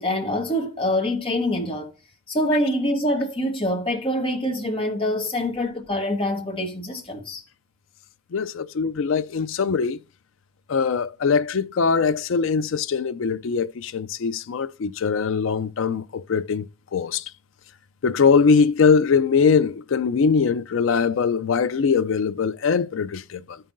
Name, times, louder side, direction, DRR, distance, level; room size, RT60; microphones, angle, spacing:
voice 1, 0.0-1.9 2.3-7.4, left 1 dB, 25° left, 1.2 m, -25 dB
voice 2, 8.3-10.0 10.7-17.2 18.0-23.6, left 5 dB, 60° left, 0.4 m, -22 dB
13.5 x 5.5 x 2.6 m
head